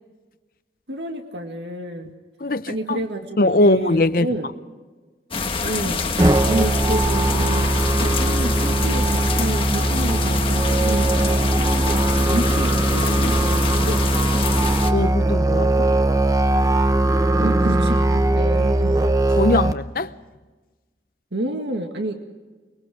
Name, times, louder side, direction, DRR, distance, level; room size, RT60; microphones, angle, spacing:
voice 1, 0.9-2.1 2.7-4.5 5.6-6.0 6.5-7.7 8.0-14.4 17.4-19.2 21.3-22.1, right 1 dB, 80° right, 2.0 m, -29 dB
voice 2, 2.4-3.0 3.4-4.3 14.9-15.9 19.4-20.1, left 2 dB, 50° left, 0.7 m, -20 dB
sound 1, 5.3-14.9, left 4 dB, 30° left, 1.4 m, -26 dB
Musical instrument, 6.2-19.7, right 1 dB, 20° right, 0.7 m, -20 dB
24.5 x 22.5 x 5.0 m
head